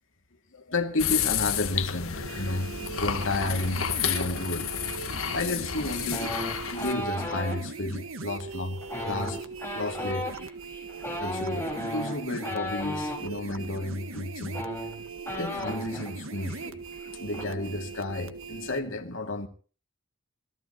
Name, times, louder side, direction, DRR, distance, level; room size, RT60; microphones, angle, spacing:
voice 1, 0.5-2.7 3.0-4.8 5.3-10.4 11.2-14.6 15.3-16.8 17.1-19.5, left 2 dB, 65° left, 2.4 m, -32 dB
sound 1, 1.0-6.9, left 8 dB, 85° left, 1.5 m, -31 dB
sound 2, 2.2-18.8, right 4 dB, 80° right, 1.6 m, -40 dB
sound 3, 6.1-7.6 8.8-13.2 14.1-14.2 14.5-16.1 16.4-16.7 16.9-17.4, left 1 dB, 10° left, 4.9 m, -34 dB
27.0 x 15.0 x 3.0 m
head